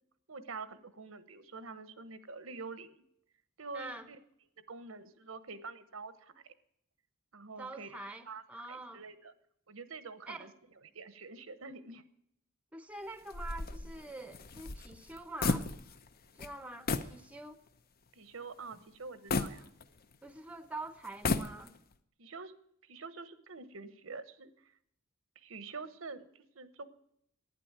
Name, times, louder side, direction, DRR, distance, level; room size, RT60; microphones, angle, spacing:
voice 1, 0.3-3.0 3.6-4.2 4.7-6.4 7.3-8.0 8.3-9.3 9.7-10.5 10.9-12.0 18.2-19.7 22.2-24.5 25.4-26.8, right 4 dB, 85° right, 1.0 m, -46 dB
voice 2, 3.7-4.1 7.6-9.0 10.3-10.5 12.7-15.7 16.4-17.6 20.2-21.7, right 2 dB, 5° right, 0.7 m, -45 dB
sound 1, 13.3-16.1 16.4-16.5 16.9-17.2 17.7-17.8 19.3-20.3 21.0-21.9, left 3 dB, 45° left, 0.7 m, -34 dB
11.5 x 9.8 x 8.8 m
head